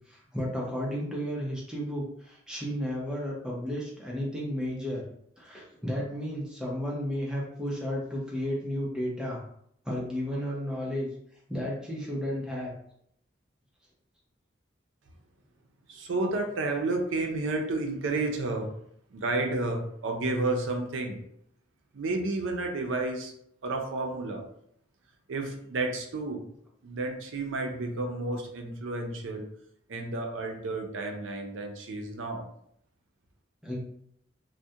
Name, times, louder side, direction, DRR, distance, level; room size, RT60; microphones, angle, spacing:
voice 1, 0.1-5.0 5.4-9.4 9.8-11.1 11.5-12.7 33.6-33.8, equal, 5° right, -4 dB, 0.5 m, -33 dB
voice 2, 15.9-18.7 19.1-21.2 21.9-23.3 23.6-24.4 25.3-26.4 26.8-29.5 29.9-32.5, right 2 dB, 90° right, 3 dB, 0.5 m, -31 dB
2.3 x 2.1 x 2.7 m, 0.72 s
head